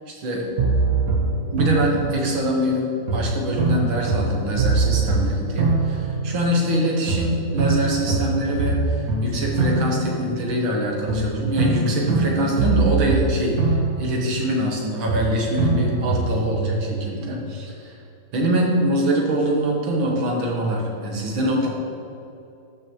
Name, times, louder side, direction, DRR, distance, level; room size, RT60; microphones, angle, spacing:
voice 1, 0.1-0.4 1.5-2.8 3.1-13.6 14.0-18.0 18.3-21.7, equal, 75° right, -1 dB, 2.1 m, -24 dB
sound 1, 0.6-2.7 3.1-6.8 7.1-10.7 11.1-14.8 15.1-16.7, right 3 dB, 50° right, 1.5 m, -23 dB
13.0 x 5.8 x 3.1 m, 2.6 s
omnidirectional pair, 2.2 m